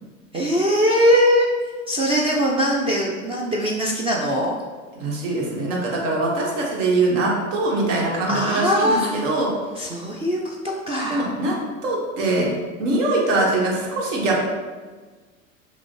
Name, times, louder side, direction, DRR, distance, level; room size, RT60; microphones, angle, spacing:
voice 1, 0.3-1.5 1.9-4.6 8.3-9.1 9.8-11.3, equal, 15° right, -2 dB, 0.3 m, -21 dB
voice 2, 5.0-9.5 11.1-11.5 11.8-12.5 12.8-14.4, right 2 dB, 70° right, -2 dB, 1.3 m, -22 dB
5.9 x 2.2 x 3.1 m, 1.4 s
hypercardioid pair, 85°, 40 cm